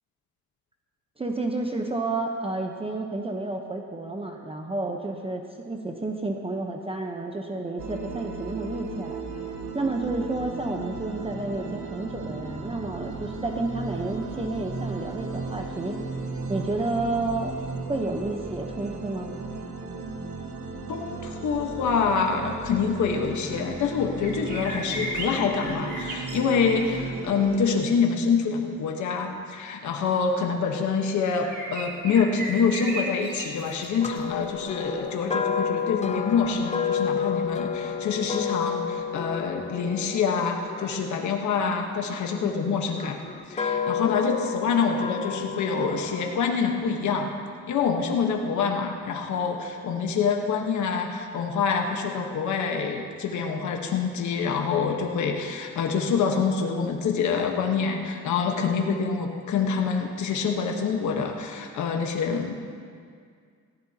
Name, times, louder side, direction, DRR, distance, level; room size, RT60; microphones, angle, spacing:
voice 1, 1.2-9.2 9.7-16.0 16.5-17.5 17.9-19.4, right 2 dB, 20° right, 2 dB, 0.9 m, -30 dB
sound 1, 7.8-27.7, right 3 dB, 75° right, 1.5 m, -35 dB
voice 2, 20.9-43.2 43.5-47.3 47.7-62.6, left 5 dB, 70° left, 2 dB, 1.3 m, -26 dB
sound 2, 24.2-27.0 31.4-34.5, right 1 dB, 35° right, 2.3 m, -35 dB
sound 3, 34.0-42.2 42.9-46.4, left 6 dB, 20° left, 0.9 m, -31 dB
17.5 x 14.0 x 2.9 m, 2.1 s
cardioid pair, 90°, 30 cm